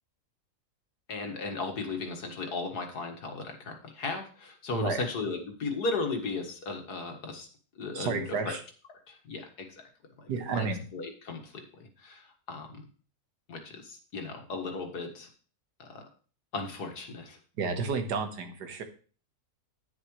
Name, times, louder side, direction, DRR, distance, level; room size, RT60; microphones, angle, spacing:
voice 1, 1.1-7.5 7.8-8.6 9.1-9.9 10.2-12.9 13.5-15.3 15.8-16.0 16.5-17.4, left 3 dB, 75° left, 3 dB, 2.2 m, -36 dB
voice 2, 4.7-5.0 7.9-8.6 10.3-10.8 17.6-18.8, right 4 dB, 85° right, 7 dB, 1.8 m, -31 dB
10.5 x 9.8 x 3.2 m, 0.39 s
omnidirectional pair, 1.7 m